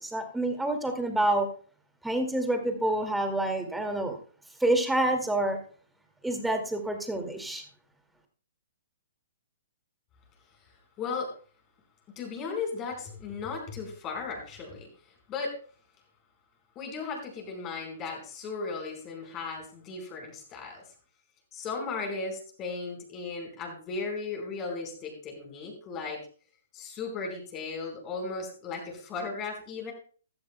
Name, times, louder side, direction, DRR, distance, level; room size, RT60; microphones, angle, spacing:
voice 1, 0.0-1.5 2.0-4.2 4.6-5.6 6.2-7.6, right 1 dB, 5° right, 5 dB, 2.2 m, -27 dB
voice 2, 11.0-11.3 12.2-14.9 15.3-15.6 16.7-20.8 21.5-26.2 26.7-29.9, left 4 dB, 25° left, 1 dB, 4.7 m, -36 dB
15.5 x 11.5 x 2.3 m, 0.41 s
hypercardioid pair, 130°, 0 cm